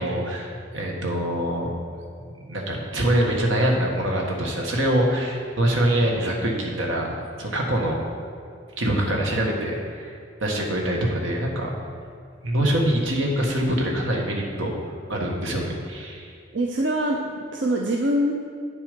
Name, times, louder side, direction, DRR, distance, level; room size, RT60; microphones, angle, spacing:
voice 1, 0.0-1.7 2.4-7.1 7.4-8.0 8.8-10.1 10.4-11.7 12.4-14.7 15.1-16.3, right 1 dB, 85° right, 0 dB, 1.6 m, -24 dB
voice 2, 16.5-18.3, right 1 dB, 65° right, 0 dB, 0.7 m, -24 dB
9.4 x 7.0 x 5.2 m, 2.3 s
head